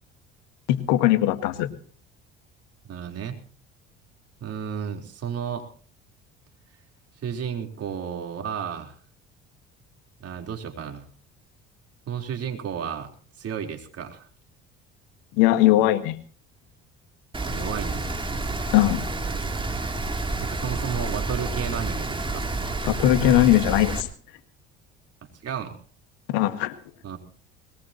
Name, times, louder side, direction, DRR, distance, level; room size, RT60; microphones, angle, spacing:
voice 1, 0.7-1.7 15.4-16.2 18.7-19.0 22.8-24.1 26.3-26.7, left 14 dB, 75° left, 10 dB, 1.7 m, -20 dB
voice 2, 2.9-3.4 4.4-5.7 7.2-9.0 10.2-11.1 12.1-13.1 13.4-14.3 17.4-18.2 20.4-22.4 25.4-25.8 27.0-27.2, right 8 dB, 50° right, 4 dB, 3.9 m, -32 dB
Rain, 17.3-24.0, right 2 dB, 15° right, 3.0 m, -29 dB
21.0 x 19.0 x 2.9 m, 0.42 s
hypercardioid pair, 65°, 31 cm